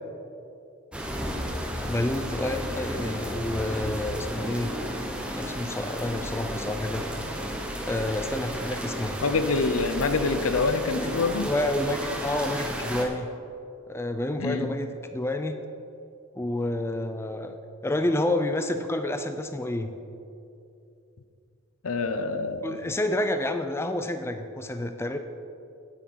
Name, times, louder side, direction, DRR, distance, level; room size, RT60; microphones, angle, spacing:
sound 1, 0.9-13.0, equal, 5° right, 0.9 m, -33 dB
voice 1, 1.9-4.7 5.4-7.1 7.8-9.2 11.4-13.3 13.9-15.6 16.4-17.6 17.8-20.0 22.6-25.2, left 1 dB, 10° left, 8 dB, 0.4 m, -29 dB
voice 2, 9.2-11.5 14.4-14.7 21.8-22.8, left 4 dB, 85° left, 10 dB, 0.6 m, -26 dB
9.3 x 8.7 x 5.6 m, 2.7 s
head